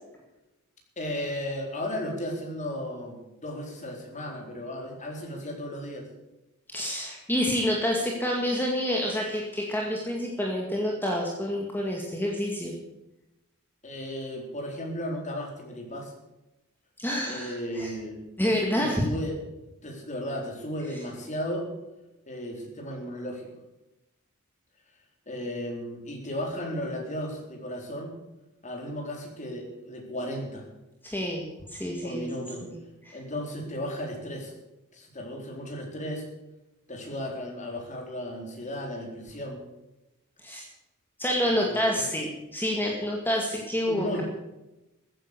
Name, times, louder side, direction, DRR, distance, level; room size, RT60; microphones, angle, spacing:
voice 1, 1.0-6.1 13.8-16.1 17.2-19.3 19.8-21.7 22.3-23.5 25.3-28.1 28.6-30.6 32.0-32.7 33.1-34.5 34.9-36.2 36.9-39.6 41.4-42.1 43.9-44.2, equal, 35° left, 1 dB, 4.2 m, -35 dB
voice 2, 6.7-12.7 17.0-17.9 18.4-19.1 20.9-21.0 31.0-32.3 32.6-33.2 40.4-40.6 41.2-44.2, equal, 10° left, -1 dB, 2.1 m, -28 dB
14.5 x 9.9 x 8.3 m, 0.96 s
head